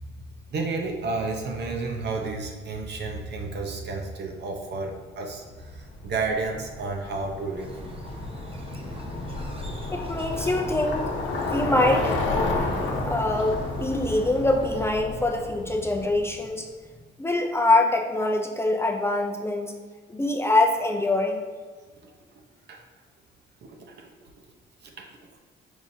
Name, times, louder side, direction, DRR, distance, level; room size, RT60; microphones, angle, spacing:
voice 1, 0.5-7.8 22.0-22.1 22.7-22.8 23.9-24.3 24.8-25.4, right 3 dB, 60° right, 2 dB, 0.8 m, -32 dB
Bicycle, 5.6-16.5, left 2 dB, 75° left, 0.8 m, -31 dB
sound 1, 7.6-15.0, right 1 dB, 30° right, 0.7 m, -43 dB
voice 2, 9.9-12.1 13.0-16.7 17.2-19.7 20.1-21.4, left 2 dB, 10° left, 2 dB, 0.4 m, -24 dB
4.8 x 4.0 x 2.7 m, 1.5 s
cardioid pair, 90°, 20 cm